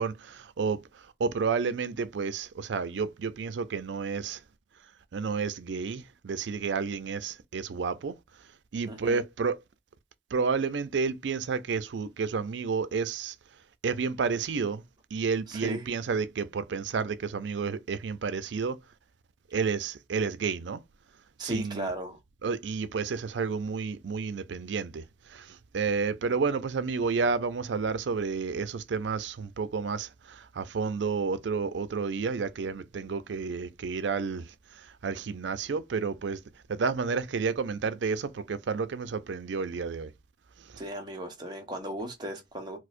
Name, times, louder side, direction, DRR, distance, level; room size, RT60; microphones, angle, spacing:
voice 1, 0.0-4.4 5.1-9.6 10.3-13.4 13.8-14.8 15.1-18.8 19.5-20.8 21.4-21.9 22.4-36.4 36.7-40.1 40.6-40.8, right 5 dB, 80° right, 0.4 m, -31 dB
voice 2, 8.9-9.2 15.5-15.9 21.4-22.2 40.8-42.8, right 1 dB, 25° right, 0.9 m, -36 dB
4.6 x 2.0 x 2.5 m
head